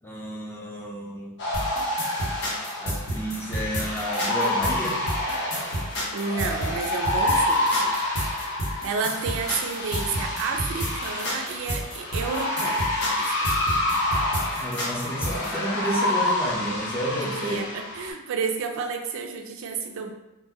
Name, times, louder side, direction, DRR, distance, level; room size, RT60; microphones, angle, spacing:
voice 1, 0.0-1.3 2.8-5.0 14.5-17.6, equal, 10° left, -3 dB, 0.4 m, -31 dB
sound 1, 1.4-18.1, left 1 dB, 55° left, 0.6 m, -28 dB
sound 2, 1.5-15.5, equal, 90° left, 1.0 m, -30 dB
voice 2, 6.1-7.9 8.8-12.9 13.2-13.4 17.2-20.1, right 5 dB, 65° right, 4 dB, 0.3 m, -31 dB
2.2 x 2.1 x 3.3 m, 1.0 s
head